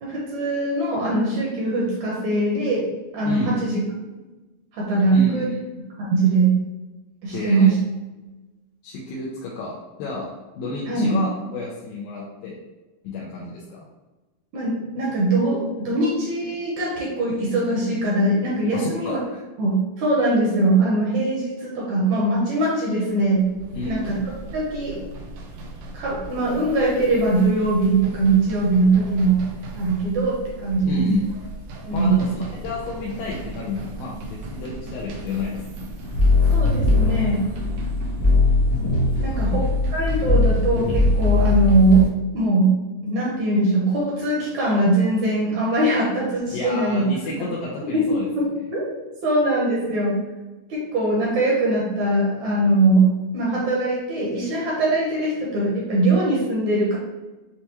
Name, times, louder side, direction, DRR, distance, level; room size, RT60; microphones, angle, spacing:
voice 1, 0.0-2.8 3.1-3.8 4.7-5.5 6.0-6.5 7.2-7.8 10.9-11.2 14.5-19.2 19.6-23.4 23.8-24.2 24.5-25.0 25.9-29.4 29.8-31.1 31.9-32.4 36.5-37.5 39.2-39.6 39.9-42.0 42.3-42.7 43.0-47.1 47.9-48.8 49.2-50.2 50.7-53.1 53.3-57.0, right 2 dB, 75° right, -4 dB, 1.8 m, -21 dB
voice 2, 3.2-3.6 5.1-5.6 7.3-7.7 8.8-10.3 10.6-12.6 13.0-13.8 18.7-19.4 23.7-24.1 30.9-31.2 31.9-36.0 39.2-39.6 46.5-48.3, left 3 dB, 90° left, -4 dB, 2.4 m, -31 dB
sound 1, 23.2-42.1, right 3 dB, 90° right, 1.6 m, -36 dB
sound 2, 36.0-42.0, left 3 dB, 65° left, 1.8 m, -20 dB
6.6 x 2.3 x 2.9 m, 1.1 s
omnidirectional pair, 4.1 m